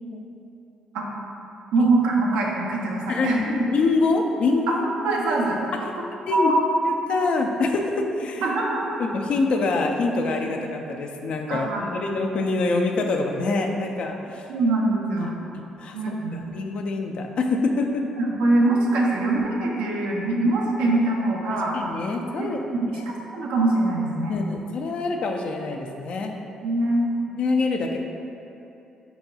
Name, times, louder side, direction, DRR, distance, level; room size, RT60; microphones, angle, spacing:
voice 1, 1.7-3.6 4.7-4.8 5.0-5.9 6.3-6.7 8.4-9.0 11.5-12.0 14.5-15.4 15.9-16.5 18.2-21.8 22.3-24.4 26.6-27.0, right 2 dB, 90° right, -2 dB, 0.6 m, -23 dB
voice 2, 3.1-4.9 5.7-5.9 6.3-6.5 6.8-8.4 9.0-14.4 15.2-18.0 21.7-22.6 22.9-23.0 24.3-26.3 27.3-28.0, left 3 dB, 60° left, 3 dB, 0.4 m, -25 dB
4.5 x 4.0 x 2.4 m, 2.8 s
supercardioid pair, 70°, 2 cm